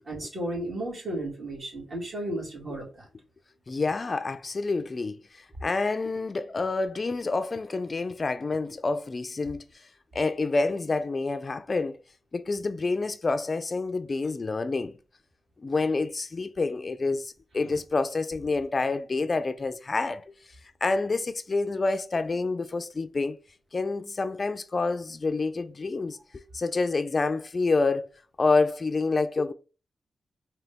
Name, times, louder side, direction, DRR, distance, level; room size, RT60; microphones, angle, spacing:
voice 1, 0.1-3.1, right 1 dB, 50° right, 2.3 m, -34 dB
voice 2, 3.7-9.6 10.1-12.0 12.3-14.9 15.6-20.2 20.8-23.4 23.7-28.1 28.4-29.5, left 3 dB, 40° left, 0.3 m, -28 dB
3.9 x 2.8 x 3.4 m
cardioid pair, 75°, 0 cm